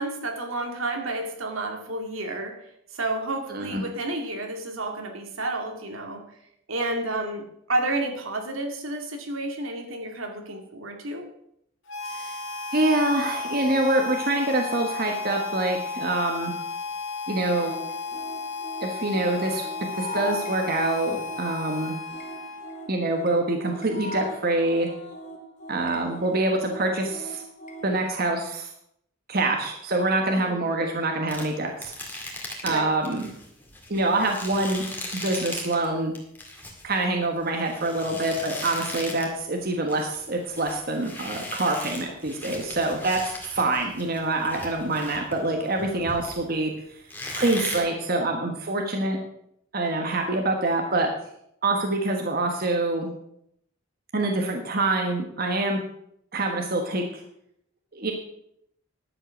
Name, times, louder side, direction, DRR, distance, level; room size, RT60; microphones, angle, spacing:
voice 1, 0.0-2.6 2.9-6.2 6.7-11.3 30.3-30.7 32.6-32.9, right 2 dB, 80° right, 3 dB, 2.2 m, -30 dB
voice 2, 3.5-3.8 12.1-12.3 12.7-16.5 17.3-17.7 18.8-19.7 19.9-22.0 22.9-24.9 25.7-27.4 27.8-28.7 29.3-31.9 32.6-33.3 33.9-34.8 35.1-36.1 36.8-47.0 47.4-49.2 49.7-51.1 51.6-53.1 54.1-55.8 56.3-57.0 57.9-58.1, right 2 dB, 45° right, 2 dB, 1.3 m, -25 dB
Harmonica, 11.9-22.9, left 4 dB, 60° left, 2.0 m, -34 dB
sound 1, 17.5-27.9, equal, 40° left, 2.2 m, -40 dB
sound 2, 31.3-35.9 36.2-39.4 39.7-46.7 47.1-47.8, left 1 dB, 10° left, 2.1 m, -38 dB
11.0 x 7.8 x 6.3 m, 0.73 s
head